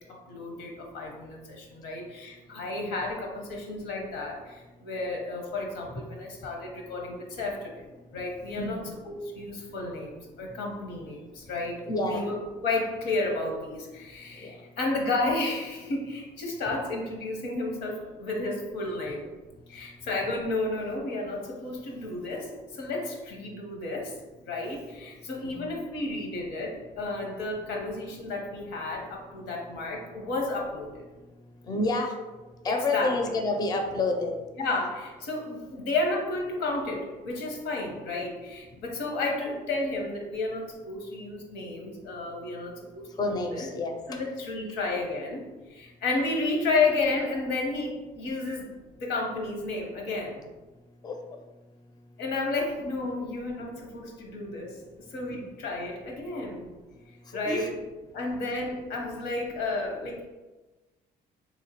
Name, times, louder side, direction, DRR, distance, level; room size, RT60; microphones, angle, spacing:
voice 1, 0.1-7.8 8.1-19.3 19.7-24.1 24.5-31.0 32.9-33.1 34.6-43.7 44.1-45.4 45.7-48.7 49.0-50.5 52.2-54.8 55.1-56.7 57.3-57.7 58.1-60.3, left 2 dB, 90° left, 1 dB, 0.8 m, -32 dB
voice 2, 11.9-12.3 14.4-14.5 25.4-25.6 31.7-32.1 32.6-34.4 43.2-43.9 51.0-51.2 57.3-57.7, left 2 dB, 25° left, 3 dB, 0.4 m, -28 dB
3.4 x 2.8 x 2.9 m, 1.2 s
cardioid pair, 110°, 17 cm